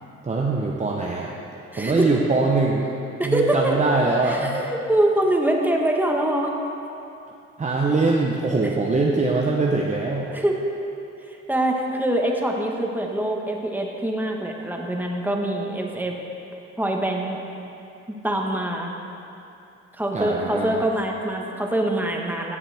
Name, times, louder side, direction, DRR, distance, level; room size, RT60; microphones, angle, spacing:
voice 1, 0.2-1.3 1.8-2.9 3.2-4.5 7.6-10.3 20.1-20.8, right 3 dB, 25° right, -2 dB, 0.8 m, -22 dB
voice 2, 1.7-2.1 3.2-3.8 4.2-6.5 8.6-8.7 10.3-10.6 11.3-16.1 16.8-17.4 18.1-18.9 19.9-22.6, right 1 dB, 5° right, 0 dB, 1.2 m, -24 dB
15.5 x 7.3 x 3.4 m, 2.8 s
cardioid pair, 90°, 30 cm